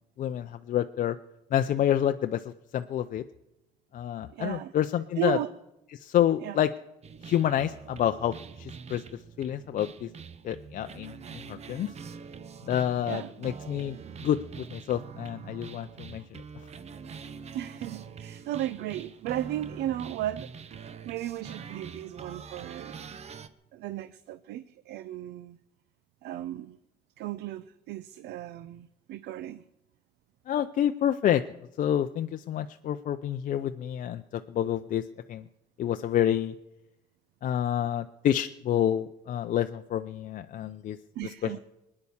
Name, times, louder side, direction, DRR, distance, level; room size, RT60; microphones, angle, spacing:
voice 1, 0.2-1.2 1.5-3.2 3.9-5.4 5.9-6.7 7.2-10.1 10.4-11.9 12.6-16.4 30.5-31.4 31.8-35.5 35.8-36.5 37.4-41.0 41.2-41.6, left 10 dB, 50° left, 8 dB, 0.5 m, -28 dB
voice 2, 4.3-4.7 5.2-5.5 6.4-6.6 13.1-13.3 17.5-20.7 21.0-23.1 23.7-25.6 26.2-26.8 27.2-29.6 41.2-41.6, right 13 dB, 80° right, 15 dB, 0.5 m, -35 dB
sound 1, 7.0-23.5, right 6 dB, 40° right, 0.8 m, -44 dB
20.5 x 9.7 x 7.1 m, 0.93 s
cardioid pair, 110°, 17 cm